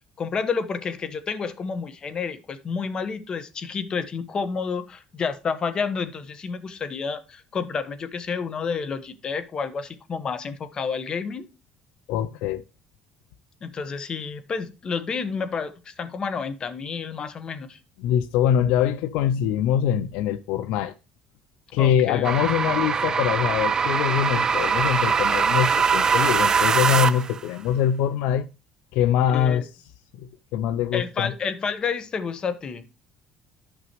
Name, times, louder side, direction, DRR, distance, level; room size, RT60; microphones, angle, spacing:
voice 1, 0.2-11.5 13.6-17.8 21.8-22.3 29.3-29.6 30.9-32.8, left 5 dB, 40° left, 1.2 m, -30 dB
voice 2, 12.1-12.6 18.0-20.9 21.7-28.5 28.9-29.7 30.2-31.3, left 9 dB, 80° left, 0.5 m, -23 dB
sound 1, 22.2-27.4, right 6 dB, 30° right, 0.5 m, -22 dB
11.5 x 6.0 x 3.0 m
supercardioid pair, 85°, 2 cm